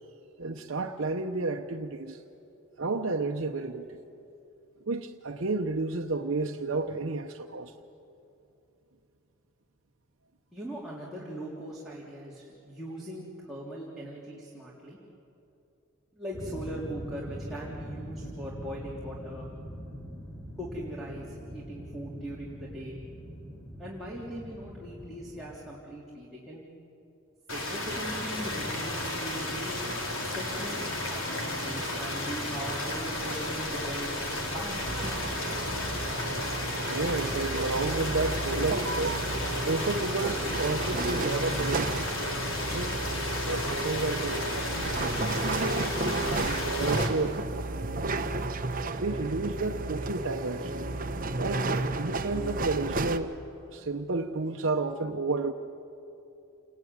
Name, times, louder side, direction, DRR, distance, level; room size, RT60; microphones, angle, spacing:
voice 1, 0.4-2.2 2.8-4.0 4.9-7.7 36.9-42.1 42.7-42.9 43.5-44.5 46.1-47.4 48.1-48.3 49.0-50.9 51.4-53.3 53.7-55.5, right 3 dB, 65° right, 0.9 m, -31 dB
voice 2, 10.5-15.0 16.1-19.5 20.6-23.0 23.8-26.6 27.5-35.2, right 1 dB, ahead, 3.4 m, -40 dB
sound 1, 16.3-25.5, equal, 15° left, 3.1 m, -42 dB
sound 2, 27.5-47.1, left 1 dB, 70° left, 4.2 m, -33 dB
sound 3, 34.9-53.2, right 2 dB, 40° right, 1.0 m, -33 dB
29.5 x 21.0 x 9.6 m
head